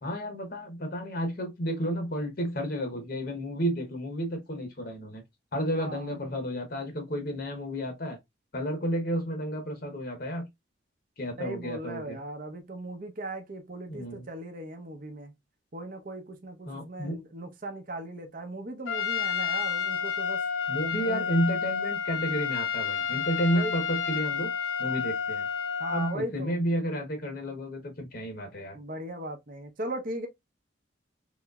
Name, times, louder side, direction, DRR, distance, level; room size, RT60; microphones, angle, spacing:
voice 1, 0.0-5.2 5.5-8.2 8.5-10.5 11.2-12.2 13.9-14.2 16.7-17.1 20.7-24.5 24.8-25.4 25.9-28.8, equal, 50° left, 0.9 m, -31 dB
voice 2, 5.7-6.1 11.3-15.3 15.7-20.4 21.0-21.3 23.5-23.7 25.8-26.6 28.7-30.3, right 1 dB, 45° right, 0.7 m, -38 dB
Trumpet, 18.9-26.2, left 6 dB, 80° left, 0.6 m, -30 dB
3.9 x 3.0 x 2.3 m
head